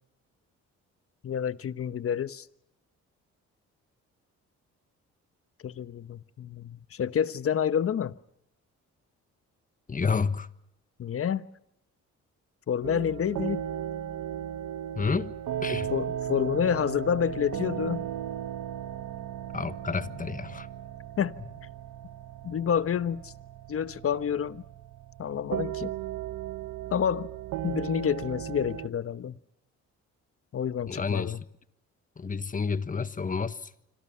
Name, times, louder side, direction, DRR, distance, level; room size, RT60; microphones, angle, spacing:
voice 1, 1.2-2.5 5.6-8.1 11.0-11.5 12.7-13.6 15.9-18.0 21.2-21.3 22.4-23.3 23.7-24.6 25.2-25.9 26.9-27.3 27.6-29.4 30.5-31.4, left 8 dB, 50° left, 1.1 m, -28 dB
voice 2, 9.9-10.5 14.9-15.3 15.6-15.9 19.5-20.7 30.9-31.3 32.2-33.6, left 5 dB, 25° left, 1.3 m, -29 dB
sound 1, 12.8-28.9, right 10 dB, 80° right, 1.2 m, -36 dB
27.0 x 25.5 x 5.7 m
cardioid pair, 90°, 30 cm